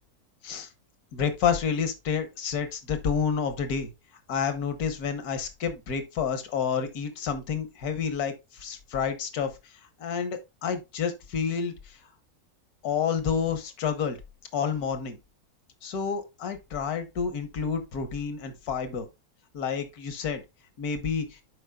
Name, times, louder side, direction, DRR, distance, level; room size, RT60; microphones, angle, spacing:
voice 1, 1.1-3.9 4.3-9.5 10.0-12.0 12.8-14.2 14.5-15.2 15.8-19.1 19.5-20.4 20.8-21.4, left 6 dB, 75° left, 1.6 m, -29 dB
11.5 x 4.9 x 2.3 m
omnidirectional pair, 1.6 m